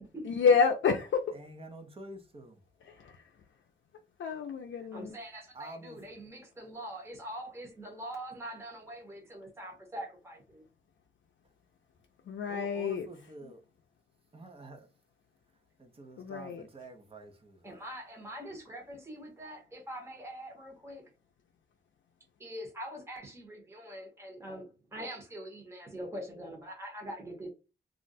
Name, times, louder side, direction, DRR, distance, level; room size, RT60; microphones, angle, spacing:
voice 1, 0.2-1.2 2.8-3.3 4.2-5.2 12.3-13.1 13.4-13.5 16.2-16.6, left 5 dB, 75° left, 0.5 m, -29 dB
voice 2, 1.3-2.6 5.5-6.0 12.5-13.6 14.3-14.9 15.8-17.8, right 2 dB, 30° right, 0.7 m, -47 dB
voice 3, 4.9-10.6 17.6-21.0 22.4-27.5, equal, 15° right, 0.9 m, -43 dB
2.4 x 2.1 x 3.9 m
wide cardioid pair, 165°, 19 cm